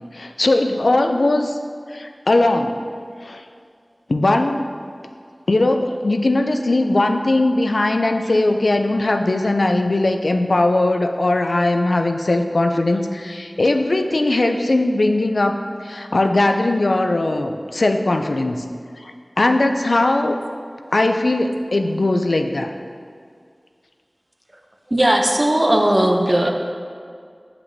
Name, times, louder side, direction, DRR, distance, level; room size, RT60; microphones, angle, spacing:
voice 1, 0.1-1.6 1.9-2.8 3.2-3.4 4.1-4.7 5.5-18.6 19.0-20.4 20.9-22.7 26.2-26.3, left 2 dB, 85° left, 5 dB, 0.3 m, -19 dB
voice 2, 24.9-26.5, right 1 dB, 35° right, 3 dB, 0.6 m, -17 dB
7.6 x 5.8 x 2.7 m, 2.2 s
wide cardioid pair, 50°, 0 cm